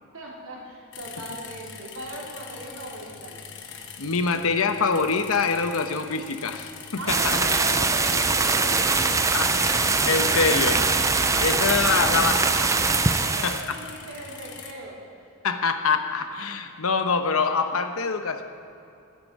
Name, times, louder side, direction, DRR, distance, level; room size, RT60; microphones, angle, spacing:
voice 1, 0.1-3.5 7.0-9.0 11.2-12.2 13.1-15.0, right 1 dB, 70° right, -4 dB, 3.7 m, -38 dB
sound 1, 0.9-14.7, left 6 dB, 55° left, 1.2 m, -43 dB
voice 2, 4.0-7.4 9.3-10.8 11.4-12.4 13.4-13.6 15.4-18.4, left 4 dB, 75° left, 7 dB, 1.0 m, -25 dB
sound 2, 7.1-13.6, right 4 dB, 15° right, 0.5 m, -22 dB
sound 3, 8.7-13.2, right 2 dB, 85° right, 2.0 m, -41 dB
20.5 x 9.6 x 4.8 m, 2.6 s
head